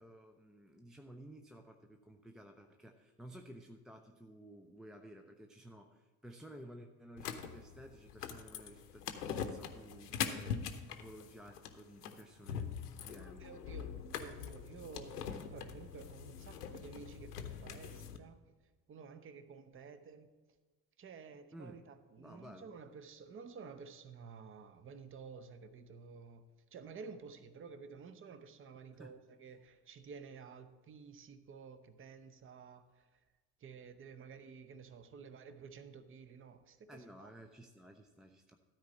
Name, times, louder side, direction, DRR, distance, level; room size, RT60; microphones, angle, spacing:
voice 1, 0.0-13.6 21.5-21.8 22.2-22.7 28.9-29.2 36.9-38.6, right 1 dB, ahead, 4 dB, 0.3 m, -54 dB
sound 1, 7.2-18.2, left 7 dB, 75° left, 0.7 m, -43 dB
voice 2, 13.4-18.4 18.9-20.3 21.0-26.4 26.7-33.2 33.6-37.3, right 5 dB, 25° right, 12 dB, 0.7 m, -52 dB
13.0 x 4.4 x 7.2 m, 1.3 s
figure-of-eight pair, 50°, 46 cm